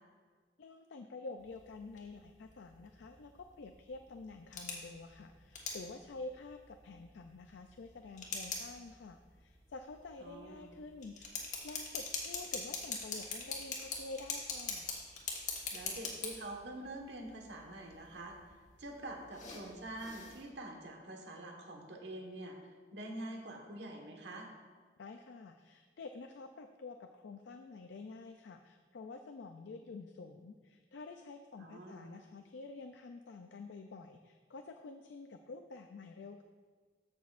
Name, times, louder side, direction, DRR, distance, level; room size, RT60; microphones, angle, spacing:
voice 1, 0.6-14.9 25.0-36.4, left 3 dB, 85° left, 6 dB, 0.4 m, -49 dB
sound 1, 1.4-20.4, left 4 dB, 40° left, 1.3 m, -45 dB
voice 2, 10.2-10.8 15.7-18.3 18.8-22.6 22.9-24.5 31.6-32.2, right 1 dB, 80° right, 1 dB, 1.4 m, -46 dB
14.0 x 6.2 x 2.5 m, 1.5 s
head